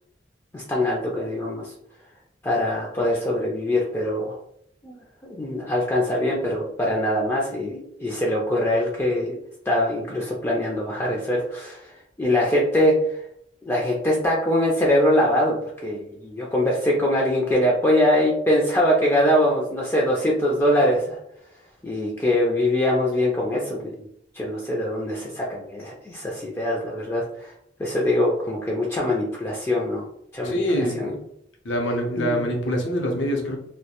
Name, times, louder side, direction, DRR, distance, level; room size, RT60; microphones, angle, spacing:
voice 1, 0.5-1.7 2.4-4.4 4.8-9.4 9.7-13.2 13.7-15.6 15.8-21.2 21.8-24.1 24.3-27.5 27.8-30.1 30.3-31.2 32.2-32.4, left 1 dB, 15° left, -3 dB, 0.3 m, -23 dB
voice 2, 30.4-31.2 31.6-33.6, equal, 75° left, 1 dB, 0.6 m, -25 dB
2.2 x 2.1 x 2.8 m, 0.70 s
head